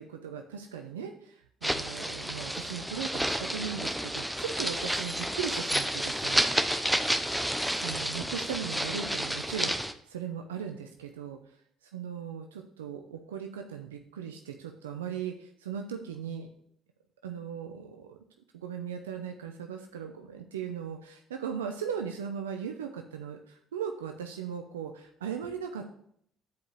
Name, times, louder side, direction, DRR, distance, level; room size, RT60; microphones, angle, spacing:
voice 1, 0.0-6.4 7.5-11.4 11.8-16.5 17.2-18.2 18.5-25.9, right 7 dB, 85° right, 4 dB, 0.6 m, -38 dB
sound 1, 1.6-9.9, equal, 5° right, 0.8 m, -30 dB
8.2 x 5.0 x 6.1 m, 0.67 s
hypercardioid pair, 55°, 0 cm